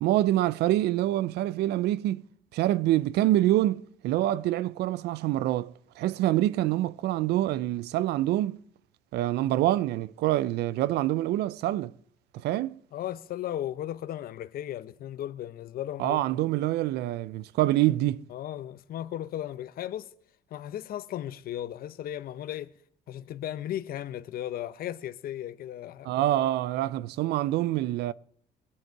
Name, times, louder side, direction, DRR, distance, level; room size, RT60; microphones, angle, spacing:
voice 1, 0.0-2.3 2.5-8.6 9.1-11.9 12.3-12.8 16.0-18.3 26.0-28.1, right 14 dB, 75° right, 0.5 m, -26 dB
voice 2, 12.9-16.2 18.3-20.1 20.5-22.7 23.1-26.1, left 12 dB, 60° left, 0.8 m, -36 dB
21.5 x 7.9 x 4.6 m
cardioid pair, 110°, 17 cm